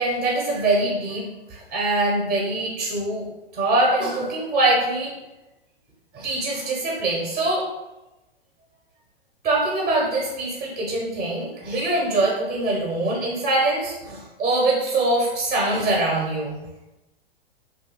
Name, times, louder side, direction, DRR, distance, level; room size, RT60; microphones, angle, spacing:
voice 1, 0.0-3.2 3.5-5.1 6.1-7.7 9.4-16.6, right 2 dB, 20° right, -2 dB, 0.5 m, -23 dB
2.7 x 2.3 x 2.9 m, 0.99 s
figure-of-eight pair, 105°, 31 cm